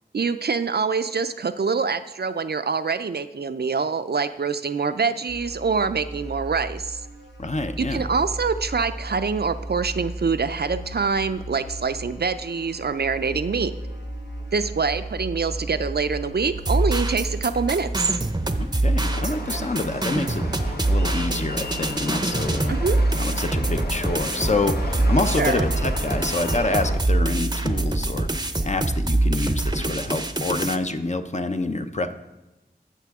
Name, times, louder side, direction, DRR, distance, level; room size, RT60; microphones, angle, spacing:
voice 1, 0.1-7.0 7.8-13.7 14.5-18.2 22.7-23.0 25.4-25.6, right 5 dB, 65° right, 11 dB, 0.4 m, -25 dB
sound 1, 5.3-23.5, right 1 dB, 90° left, 1.1 m, -36 dB
voice 2, 7.4-8.0 18.6-22.8 23.2-32.1, left 2 dB, 40° left, 7 dB, 0.6 m, -27 dB
sound 2, 16.5-30.8, right 2 dB, 25° right, 0.6 m, -24 dB
sound 3, 19.0-27.0, left 2 dB, 65° left, 0.9 m, -34 dB
14.0 x 6.7 x 3.6 m, 1.0 s
wide cardioid pair, 45°, 18 cm